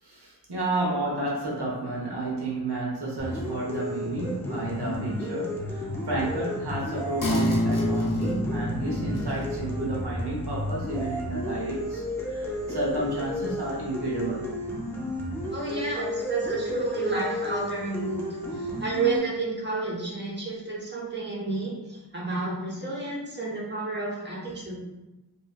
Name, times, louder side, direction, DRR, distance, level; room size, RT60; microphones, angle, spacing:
voice 1, 0.0-14.5, right 2 dB, 75° right, -4 dB, 0.9 m, -31 dB
sound 1, 3.2-19.2, left 1 dB, 5° left, 0.6 m, -33 dB
sound 2, 7.2-14.2 14.6-14.7, left 1 dB, 50° left, 0.6 m, -31 dB
voice 2, 15.5-18.2 18.5-24.7, right 3 dB, 25° right, -5 dB, 1.0 m, -30 dB
3.0 x 2.7 x 2.2 m, 1.0 s
wide cardioid pair, 55°, 40 cm